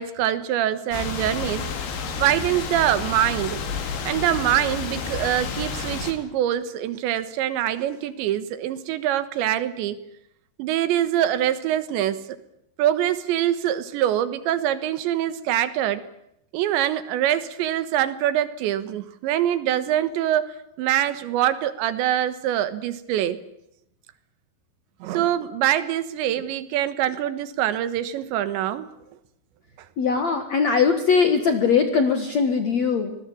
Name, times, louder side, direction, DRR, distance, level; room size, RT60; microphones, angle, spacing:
voice 1, 0.0-1.7 2.2-3.6 4.1-10.0 10.6-12.4 12.8-16.0 16.5-23.4 25.0-28.9, right 12 dB, 85° right, 13 dB, 3.6 m, -24 dB
sound 1, 0.9-6.1, left 5 dB, 85° left, 5.2 m, -30 dB
voice 2, 30.0-33.2, left 5 dB, 55° left, 7 dB, 2.2 m, -21 dB
25.5 x 20.5 x 8.6 m, 0.79 s
omnidirectional pair, 5.1 m